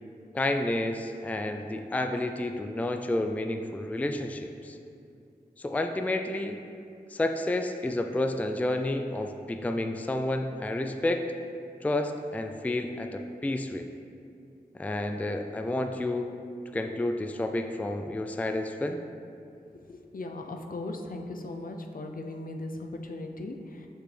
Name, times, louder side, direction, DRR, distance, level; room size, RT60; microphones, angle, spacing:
voice 1, 0.3-4.8 5.6-6.6 7.1-11.3 11.8-13.9 14.8-16.3 16.7-19.0, left 1 dB, 10° left, 6 dB, 0.3 m, -30 dB
voice 2, 20.1-23.9, left 2 dB, 60° left, 3 dB, 0.6 m, -38 dB
6.4 x 5.9 x 3.3 m, 2.5 s
cardioid pair, 50°, 16 cm